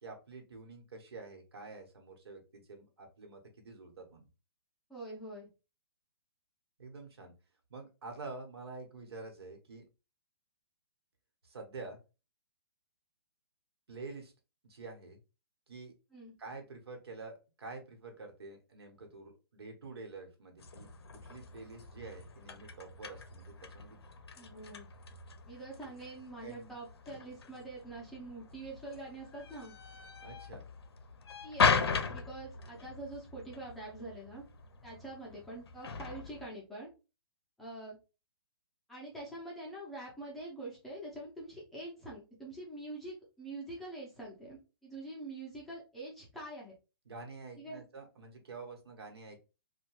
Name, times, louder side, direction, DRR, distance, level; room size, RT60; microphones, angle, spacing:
voice 1, 0.0-4.3 6.8-7.3 7.7-9.8 11.4-12.0 13.9-14.3 14.6-15.2 15.7-15.9 16.4-20.9 21.2-24.0 26.4-26.8 30.2-30.6 47.0-49.4, right 3 dB, 90° right, 3 dB, 1.0 m, -48 dB
voice 2, 4.9-5.5 16.1-16.3 24.4-24.9 25.5-29.8 31.4-31.7 32.1-34.4 34.8-36.9 37.6-38.0 38.9-46.7 47.6-47.8, right 2 dB, ahead, -6 dB, 0.4 m, -45 dB
sound 1, 20.6-36.5, left 5 dB, 85° left, 0.5 m, -38 dB
2.8 x 2.2 x 2.9 m, 0.30 s
hypercardioid pair, 170°, 13 cm